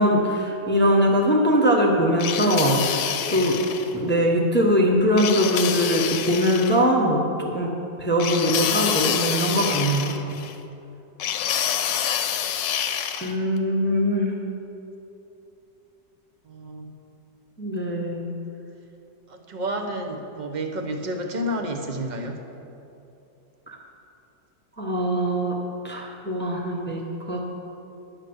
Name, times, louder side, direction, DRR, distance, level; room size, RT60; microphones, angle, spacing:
voice 1, 0.0-3.6 3.9-7.2 7.5-10.1 13.2-14.3 17.6-18.3 23.7-23.8 24.8-25.6 25.8-27.5, equal, 10° left, -1 dB, 0.9 m, -22 dB
sound 1, 2.2-3.9 5.2-6.8 8.2-10.5 11.2-13.3, left 9 dB, 85° left, 1.3 m, -27 dB
voice 2, 16.5-16.9 19.3-22.4, right 1 dB, 35° right, 4 dB, 0.8 m, -30 dB
11.0 x 6.6 x 7.9 m, 2.8 s
omnidirectional pair, 1.9 m